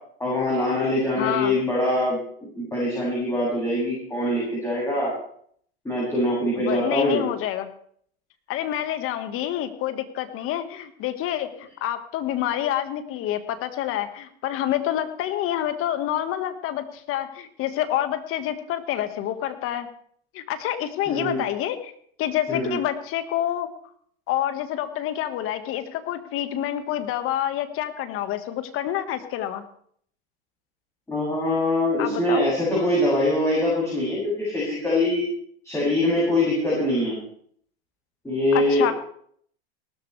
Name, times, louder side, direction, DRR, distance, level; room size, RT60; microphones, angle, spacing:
voice 1, 0.2-2.2 2.5-5.1 5.8-7.2 21.1-21.4 22.5-22.8 31.1-35.3 35.6-37.2 38.2-38.9, left 1 dB, 10° left, -6 dB, 7.7 m, -23 dB
voice 2, 1.2-1.5 6.6-7.7 8.5-19.9 20.3-21.9 22.2-23.7 24.3-29.6 32.0-32.5 38.5-38.9, left 12 dB, 45° left, 9 dB, 1.8 m, -28 dB
18.5 x 13.5 x 3.5 m, 0.62 s
hypercardioid pair, 100°, 31 cm